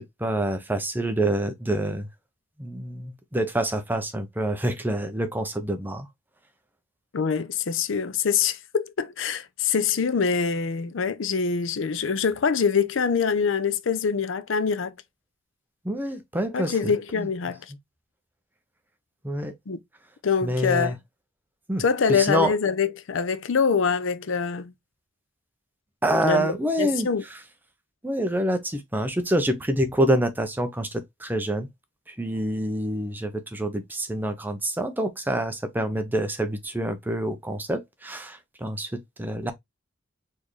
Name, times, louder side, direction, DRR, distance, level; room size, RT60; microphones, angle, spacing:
voice 1, 0.0-2.1 2.6-6.1 15.8-17.3 19.2-19.5 20.4-21.0 21.7-21.8 22.1-22.5 26.0-27.4 28.0-31.7 32.1-39.5, right 1 dB, 10° right, 0.6 m, -27 dB
voice 2, 7.1-14.9 16.5-17.6 19.7-19.8 20.2-21.0 21.8-24.7 26.2-26.5 26.8-27.2, left 6 dB, 75° left, 0.5 m, -24 dB
4.3 x 3.4 x 3.1 m
head